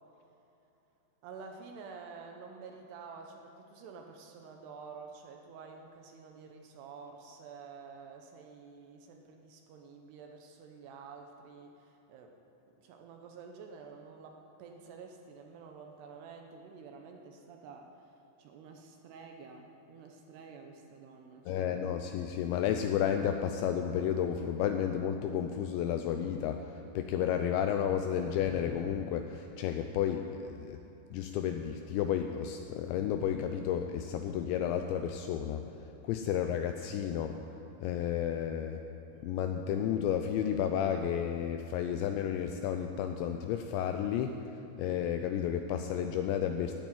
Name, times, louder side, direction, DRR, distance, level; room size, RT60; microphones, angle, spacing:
voice 1, 1.2-12.4 12.8-18.1 18.4-21.8 36.3-36.5, right 5 dB, 75° right, 3 dB, 2.5 m, -50 dB
voice 2, 21.5-30.8 31.1-35.7 36.0-37.3 37.8-38.8 39.2-46.7, left 9 dB, 85° left, 6 dB, 2.6 m, -32 dB
11.5 x 9.0 x 9.1 m, 2.9 s
omnidirectional pair, 5.7 m